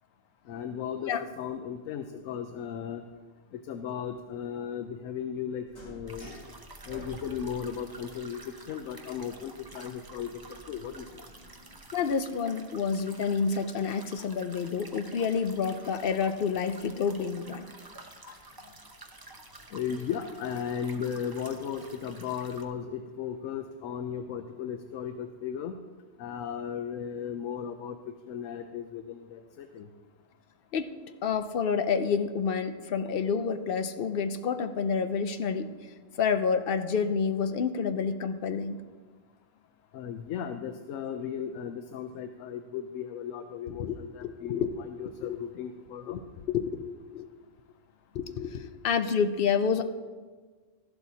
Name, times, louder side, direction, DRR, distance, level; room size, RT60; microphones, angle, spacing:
voice 1, 0.5-3.0 3.5-6.3 6.9-11.1 18.3-18.4 19.7-25.7 26.2-28.0 28.3-29.9 39.9-46.2, left 8 dB, 80° left, 7 dB, 1.0 m, -36 dB
sound 1, 5.7-11.8, equal, 35° left, 2.5 m, -50 dB
sound 2, 6.1-22.6, right 3 dB, 25° right, 0.6 m, -50 dB
voice 2, 11.9-17.6 30.7-30.9 31.2-35.7 36.2-38.8 43.8-44.0 44.2-44.7 45.2-45.4 46.1-46.2 46.5-47.3 48.1-49.8, left 6 dB, 55° left, 9 dB, 0.7 m, -29 dB
13.5 x 11.5 x 2.8 m, 1.4 s
omnidirectional pair, 1.3 m